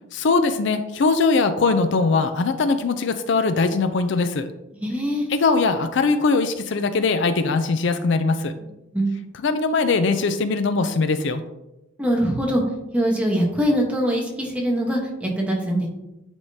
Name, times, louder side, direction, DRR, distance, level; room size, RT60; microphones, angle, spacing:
voice 1, 0.1-4.5 5.3-8.5 9.3-11.4, left 4 dB, 60° left, 9 dB, 0.4 m, -21 dB
voice 2, 4.8-5.3 8.9-9.2 12.0-12.6 12.9-15.9, equal, 5° right, -1 dB, 1.0 m, -22 dB
9.8 x 3.6 x 2.7 m, 0.95 s
head